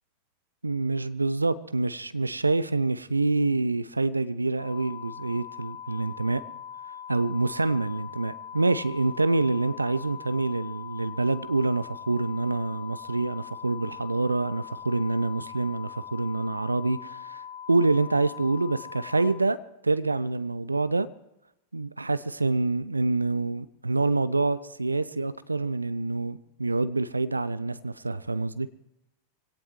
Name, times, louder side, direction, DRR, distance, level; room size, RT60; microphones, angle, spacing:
voice 1, 0.6-6.4 7.1-17.4 17.7-19.6 19.8-21.1 21.7-28.7, right 3 dB, 80° right, 0.5 m, -26 dB
sound 1, 4.6-19.3, left 8 dB, 40° left, 7.9 m, -41 dB
23.5 x 17.5 x 3.1 m
figure-of-eight pair, 90°, 0 cm